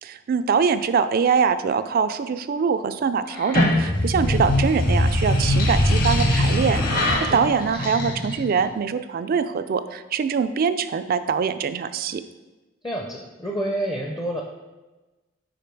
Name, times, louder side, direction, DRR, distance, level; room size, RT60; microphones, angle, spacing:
voice 1, 0.0-12.2, right 6 dB, 45° right, 12 dB, 0.3 m, -23 dB
sound 1, 3.3-8.6, left 1 dB, 45° left, 0.9 m, -22 dB
voice 2, 4.1-4.4 7.2-7.4 12.8-14.4, right 1 dB, 20° left, 1 dB, 0.5 m, -29 dB
5.0 x 5.0 x 4.5 m, 1.2 s
head